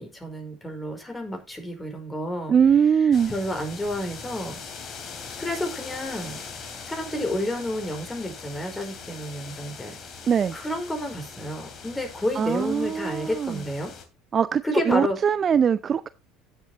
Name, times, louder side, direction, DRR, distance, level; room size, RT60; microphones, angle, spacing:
voice 1, 0.0-2.6 3.0-4.6 5.4-6.4 6.8-10.0 10.5-13.9 14.6-15.2, left 1 dB, 15° left, 4.8 m, -30 dB
voice 2, 2.5-3.3 10.3-10.6 12.4-13.6 14.3-14.6 14.9-16.1, right 7 dB, 35° right, 0.5 m, -21 dB
sound 1, 3.1-14.0, left 5 dB, 40° left, 2.8 m, -41 dB
16.0 x 7.5 x 2.9 m
figure-of-eight pair, 65°, 0 cm